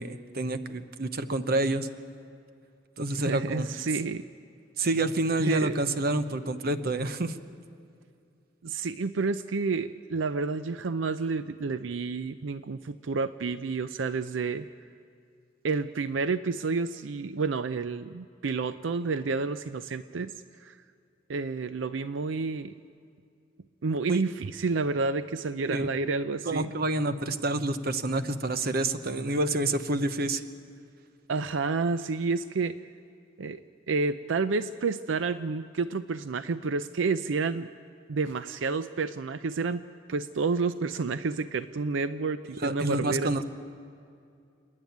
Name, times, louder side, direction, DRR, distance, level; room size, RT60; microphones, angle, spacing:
voice 1, 0.0-1.9 3.0-3.7 4.8-7.4 24.1-24.2 25.7-25.8 26.4-30.4 42.6-43.4, right 2 dB, 55° right, 10 dB, 0.9 m, -28 dB
voice 2, 3.2-4.2 5.4-5.8 8.6-14.7 15.6-20.3 20.6-20.8 21.3-22.7 23.8-26.7 31.3-32.8 33.4-33.6 33.9-37.7 38.1-39.8 40.1-43.4, right 4 dB, 80° right, 12 dB, 0.5 m, -30 dB
28.5 x 11.0 x 9.3 m, 2.5 s
head